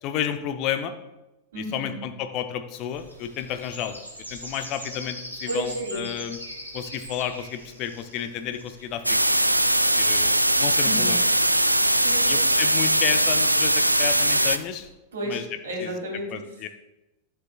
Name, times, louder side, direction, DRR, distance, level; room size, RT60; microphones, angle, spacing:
voice 1, 0.0-0.9 1.6-4.0 4.3-6.4 6.7-9.2 10.0-11.2 12.3-14.9 15.2-15.4 15.8-15.9 16.3-16.7, left 10 dB, 40° left, 9 dB, 0.6 m, -31 dB
voice 2, 1.5-2.0 5.5-6.0 10.8-11.2 11.9-12.4 15.1-16.5, right 1 dB, 65° right, -1 dB, 2.7 m, -32 dB
sound 1, 2.9-14.9, equal, 90° left, 1.7 m, -43 dB
sound 2, 9.0-14.6, right 1 dB, 85° right, 0.3 m, -20 dB
12.5 x 6.8 x 2.3 m, 0.98 s
figure-of-eight pair, 90°, 0 cm